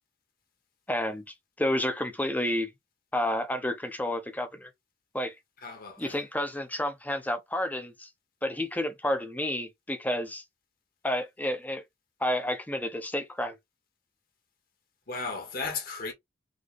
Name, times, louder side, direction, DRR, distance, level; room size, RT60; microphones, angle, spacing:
voice 1, 0.9-2.7 3.1-4.7 5.1-5.4 6.0-8.1 8.4-10.4 11.0-11.8 12.2-13.6, left 1 dB, 10° left, 0.8 m, -30 dB
voice 2, 5.6-6.2 15.1-16.1, left 4 dB, 45° left, 1.6 m, -35 dB
4.0 x 3.1 x 3.2 m
head